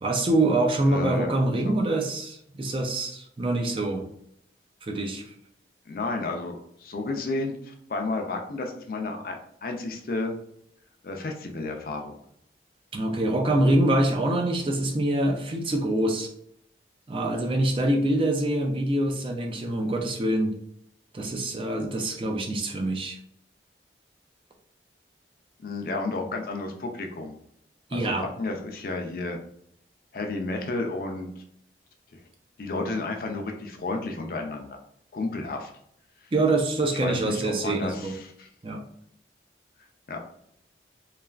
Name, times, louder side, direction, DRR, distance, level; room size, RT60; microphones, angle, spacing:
voice 1, 0.0-4.1 4.8-5.3 12.9-16.3 17.1-20.5 21.1-23.2 27.9-28.3 36.3-38.1 38.6-38.8, right 1 dB, 30° right, 2 dB, 0.4 m, -25 dB
voice 2, 0.9-1.3 1.6-1.8 5.9-10.4 11.0-12.2 14.6-14.7 25.6-27.3 27.9-29.4 30.1-31.4 32.1-32.2 32.6-34.8 35.1-35.7 37.0-38.5 40.1-40.2, left 2 dB, 50° left, 3 dB, 0.4 m, -32 dB
3.2 x 2.3 x 2.3 m, 0.70 s
head